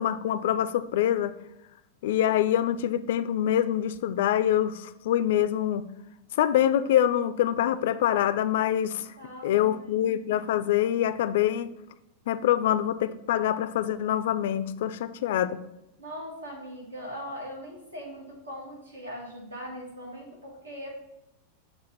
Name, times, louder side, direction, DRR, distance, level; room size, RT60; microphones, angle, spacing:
voice 1, 0.0-1.3 2.0-5.8 6.4-9.1 9.4-11.7 12.3-15.6, left 11 dB, 55° left, 13 dB, 0.3 m, -25 dB
voice 2, 9.2-10.0 16.0-20.9, equal, 80° right, -2 dB, 1.5 m, -40 dB
7.0 x 2.6 x 5.3 m, 0.87 s
figure-of-eight pair, 90°, 0 cm